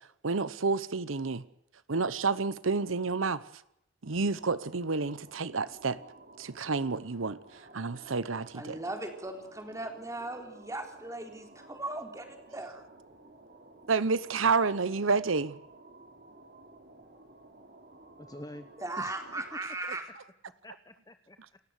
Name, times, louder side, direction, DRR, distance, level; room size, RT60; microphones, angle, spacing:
voice 1, 0.2-1.4 1.9-3.4 4.0-6.0 6.4-7.4 7.7-8.8 13.9-15.5, right 4 dB, 90° right, 17 dB, 0.9 m, -29 dB
sound 1, 4.0-19.6, right 2 dB, 50° right, 3.7 m, -54 dB
voice 2, 8.5-12.8 18.8-20.0, right 2 dB, 15° right, 5 dB, 3.9 m, -38 dB
voice 3, 18.2-18.7 19.0-19.6 19.9-20.0 20.6-21.6, left 1 dB, 20° left, 10 dB, 0.9 m, -47 dB
28.5 x 14.0 x 8.2 m, 0.79 s
head